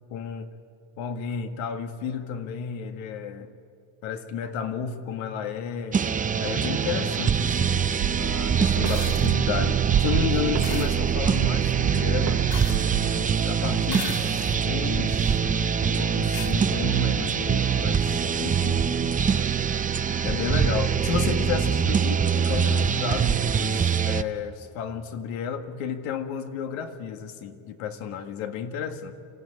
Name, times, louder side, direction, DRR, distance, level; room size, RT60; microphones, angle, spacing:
voice 1, 0.1-0.5 1.0-3.5 4.0-6.0 6.4-12.5 13.2-15.4 15.8-18.9 19.5-19.6 20.2-29.1, left 7 dB, 85° left, 7 dB, 1.9 m, -32 dB
sound 1, 5.9-24.2, right 7 dB, 20° right, 0.5 m, -24 dB
sound 2, 8.0-13.1, right 12 dB, 75° right, 2.2 m, -29 dB
sound 3, 8.8-9.3 10.6-10.9 12.5-13.1 13.9-14.6 15.3-15.4 16.3-16.5 18.0-18.1, left 6 dB, 45° left, 3.1 m, -37 dB
26.0 x 15.5 x 9.9 m, 2.5 s
cardioid pair, 140°, 46 cm